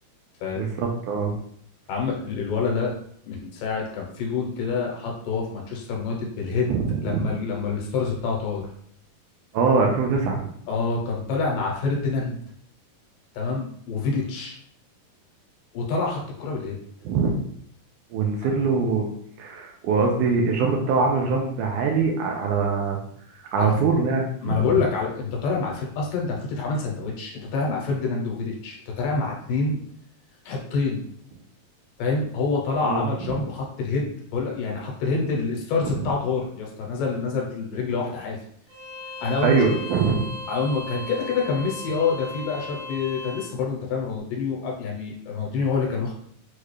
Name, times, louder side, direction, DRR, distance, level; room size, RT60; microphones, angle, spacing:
voice 1, 0.6-1.4 6.7-7.3 9.5-10.5 17.0-17.3 18.1-19.1 19.4-23.0 23.4-24.8 32.8-33.4 35.8-35.9 39.4-40.3, right 4 dB, 80° right, 0 dB, 1.9 m, -23 dB
voice 2, 1.9-2.9 3.3-6.7 7.0-8.7 10.7-12.4 13.3-14.6 15.7-16.8 23.6-23.7 24.4-29.8 30.5-31.0 32.0-38.4 39.2-39.6 40.5-46.1, left 4 dB, 80° left, -1 dB, 2.5 m, -27 dB
Bowed string instrument, 38.7-43.5, left 2 dB, 65° right, 2.4 m, -37 dB
6.5 x 2.4 x 3.2 m, 0.64 s
omnidirectional pair, 4.0 m